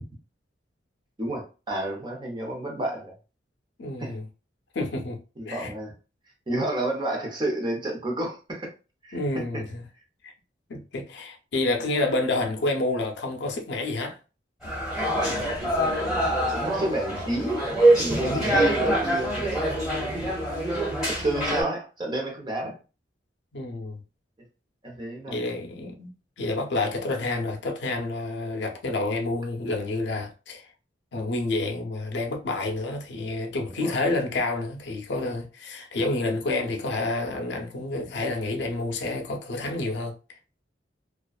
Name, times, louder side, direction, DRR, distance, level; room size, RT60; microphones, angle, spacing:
voice 1, 1.2-3.1 4.0-4.2 5.4-5.9 6.5-8.7 9.0-9.2 9.5-9.6 16.0-17.6 18.0-19.9 21.0-22.8 24.8-25.5 33.8-34.0, right 1 dB, 25° right, 0.6 m, -30 dB
voice 2, 3.8-4.2 4.7-5.7 9.1-9.8 10.2-10.3 10.7-14.2 18.2-18.6 22.6-22.7 23.5-24.0 25.3-26.1 26.4-30.7 31.1-40.1, left 2 dB, 70° left, 0.5 m, -29 dB
sound 1, 14.6-21.6, right 1 dB, 5° right, 1.2 m, -24 dB
2.3 x 2.2 x 2.3 m
head